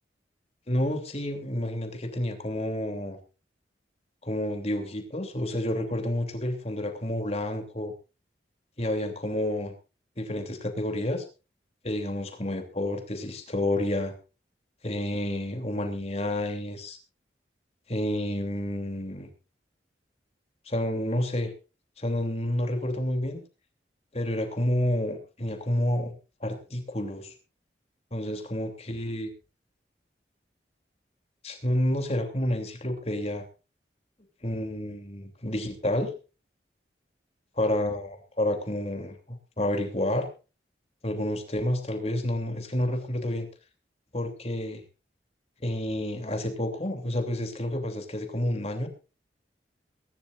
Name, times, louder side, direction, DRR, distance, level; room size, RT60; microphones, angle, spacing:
voice 1, 0.7-3.2 4.2-7.9 8.8-9.7 10.2-11.2 11.8-14.1 14.8-17.0 17.9-19.3 20.6-21.5 22.0-23.4 24.1-26.1 26.4-27.3 28.1-29.3 31.4-33.4 34.4-36.1 37.6-40.3 41.0-43.5 44.1-44.8 45.6-48.9, left 1 dB, 35° left, 5 dB, 3.0 m, -29 dB
22.5 x 12.5 x 2.5 m, 0.32 s
head